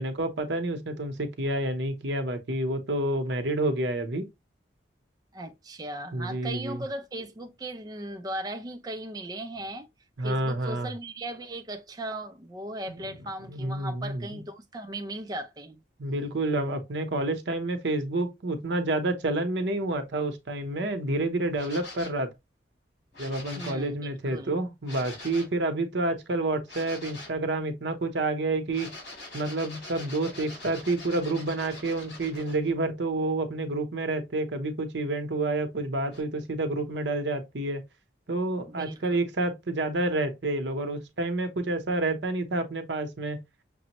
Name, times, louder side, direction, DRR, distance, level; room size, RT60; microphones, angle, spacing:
voice 1, 0.0-4.3 6.1-6.8 10.2-10.9 12.9-13.0 13.5-14.5 16.0-22.3 23.2-28.9 29.3-37.8 38.3-43.4, right 2 dB, 70° right, 0.8 m, -29 dB
voice 2, 5.3-9.9 10.2-15.8 23.6-24.5 38.7-39.2, right 1 dB, 20° right, 0.4 m, -37 dB
sound 1, 21.5-22.3 23.1-23.9 24.8-25.6 26.7-27.4 28.7-32.7 36.1-36.2, left 2 dB, 70° left, 2.6 m, -44 dB
6.0 x 2.1 x 2.9 m
head